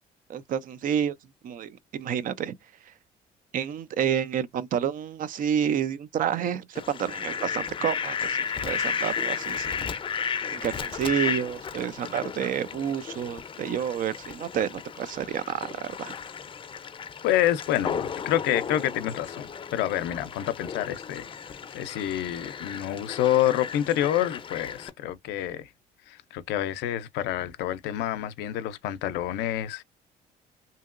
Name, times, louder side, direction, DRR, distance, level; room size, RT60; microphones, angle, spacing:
voice 1, 0.3-1.2 1.4-2.5 3.5-9.9 10.2-16.1, right 9 dB, 55° right, 0.5 m, -29 dB
Fowl, 6.7-24.9, left 7 dB, 30° left, 0.5 m, -34 dB
voice 2, 17.2-25.7 26.1-29.8, left 12 dB, 90° left, 0.5 m, -28 dB
2.8 x 2.7 x 2.4 m
cardioid pair, 110°, 17 cm